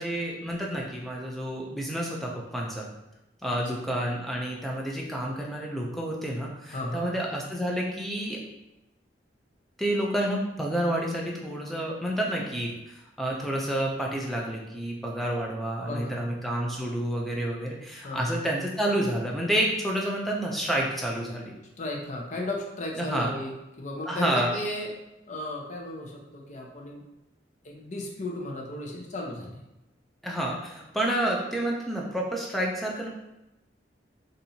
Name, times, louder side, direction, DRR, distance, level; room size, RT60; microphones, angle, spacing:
voice 1, 0.0-2.9 3.4-8.4 9.8-21.5 23.0-23.3 24.1-24.5 30.2-33.1, right 1 dB, ahead, -2 dB, 0.4 m, -29 dB
voice 2, 6.7-7.1 15.9-16.3 18.0-18.2 21.8-24.9 25.3-27.0 27.6-29.6, left 1 dB, 40° left, 0 dB, 0.7 m, -35 dB
4.2 x 2.6 x 2.7 m, 0.92 s
head